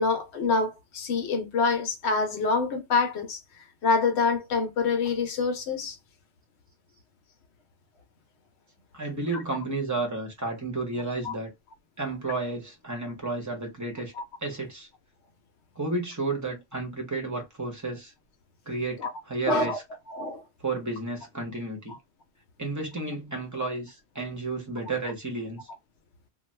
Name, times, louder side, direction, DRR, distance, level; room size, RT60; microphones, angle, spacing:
voice 1, 0.0-3.4 3.8-6.0 11.2-11.3 19.0-19.1 19.5-19.8 20.1-20.4, left 4 dB, 65° left, 0.9 m, -26 dB
voice 2, 8.9-11.5 12.0-14.1 14.4-14.9 15.8-18.1 18.7-19.8 20.6-22.0 22.6-25.6, right 3 dB, 15° right, 0.8 m, -32 dB
2.6 x 2.3 x 3.1 m
omnidirectional pair, 1.2 m